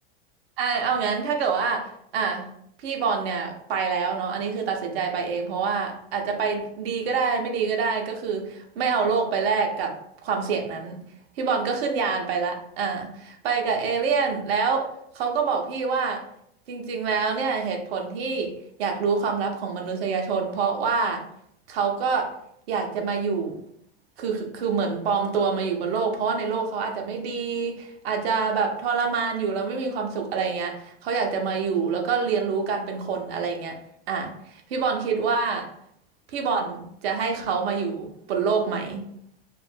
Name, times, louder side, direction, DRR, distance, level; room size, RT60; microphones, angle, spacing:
voice 1, 0.6-2.5 2.8-11.0 11.4-16.2 16.7-18.5 18.8-21.3 21.7-22.4 22.7-23.6 24.2-33.7 34.1-35.7 36.3-39.0, right 5 dB, 75° right, 2 dB, 0.8 m, -26 dB
2.5 x 2.1 x 3.3 m, 0.69 s
supercardioid pair, 120°, 31 cm